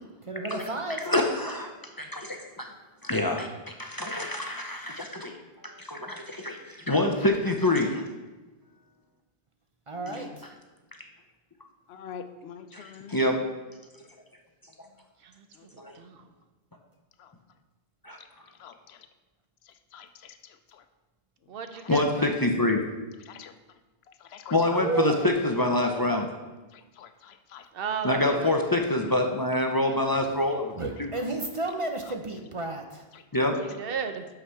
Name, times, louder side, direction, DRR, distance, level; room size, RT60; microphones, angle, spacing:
voice 1, 0.2-1.1 9.9-10.5 30.8-33.1, right 2 dB, 40° right, 4 dB, 0.6 m, -33 dB
voice 2, 1.1-2.7 3.0-8.0 11.0-11.1 12.7-12.8 13.1-13.4 14.8-14.9 15.8-16.0 18.0-18.2 21.9-22.8 24.5-26.3 28.0-30.7 31.0-31.1 33.3-33.6, left 2 dB, 25° left, 3 dB, 0.5 m, -26 dB
voice 3, 10.0-10.4 11.9-13.5 15.5-15.7 17.2-17.3 18.2-18.3 18.6-19.1 19.6-20.8 21.8-22.1 23.3-23.5 24.1-24.8 26.7-27.7 28.3-28.5 30.1-30.2 31.2-31.3 32.1-32.2 33.1-33.5, left 7 dB, 85° left, 10 dB, 0.9 m, -46 dB
voice 4, 15.7-16.2 21.5-22.4 24.8-25.4 27.7-28.5 33.6-34.3, right 5 dB, 65° right, 8 dB, 0.8 m, -32 dB
6.2 x 5.8 x 5.6 m, 1.2 s
omnidirectional pair, 1.0 m